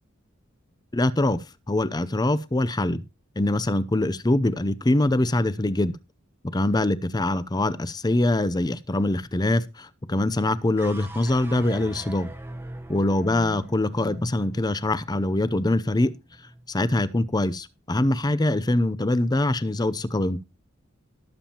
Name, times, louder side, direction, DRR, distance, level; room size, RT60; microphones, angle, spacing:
voice 1, 0.9-3.0 3.4-6.0 6.5-12.3 12.9-16.1 16.7-20.4, left 1 dB, 20° left, 0.6 m, -23 dB
sound 1, 10.8-17.1, right 1 dB, 10° right, 1.2 m, -42 dB
19.0 x 7.2 x 3.0 m
head